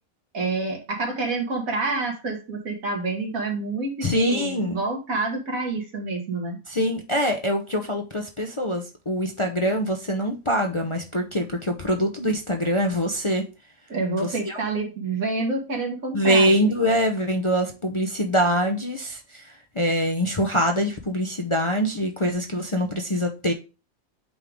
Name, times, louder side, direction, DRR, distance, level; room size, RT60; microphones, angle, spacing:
voice 1, 0.3-6.6 13.9-16.6, right 3 dB, 80° right, 2.2 m, -28 dB
voice 2, 4.0-4.8 6.7-13.4 14.2-14.6 16.1-23.5, equal, 30° left, 0.6 m, -24 dB
8.8 x 3.7 x 3.5 m
omnidirectional pair, 1.4 m